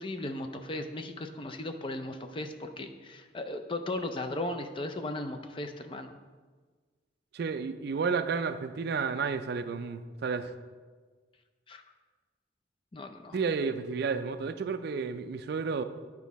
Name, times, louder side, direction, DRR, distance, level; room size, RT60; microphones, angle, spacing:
voice 1, 0.0-6.1 11.7-11.8 12.9-13.4, left 2 dB, 25° left, 6 dB, 0.4 m, -36 dB
voice 2, 7.3-10.5 13.3-15.8, right 5 dB, 55° right, 10 dB, 0.3 m, -31 dB
9.3 x 4.8 x 4.1 m, 1.4 s
head